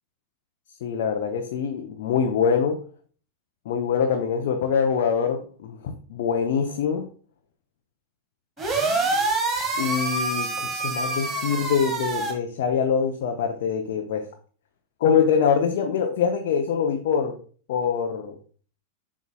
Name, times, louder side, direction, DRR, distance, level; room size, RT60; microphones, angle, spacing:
voice 1, 0.8-2.8 3.7-5.8 6.1-7.0 9.8-14.3 15.0-17.3 17.7-18.4, left 7 dB, 55° left, 3 dB, 0.7 m, -24 dB
sound 1, 8.6-12.3, right 3 dB, 25° right, 1.5 m, -26 dB
7.9 x 6.1 x 2.2 m, 0.41 s
figure-of-eight pair, 90°, 0 cm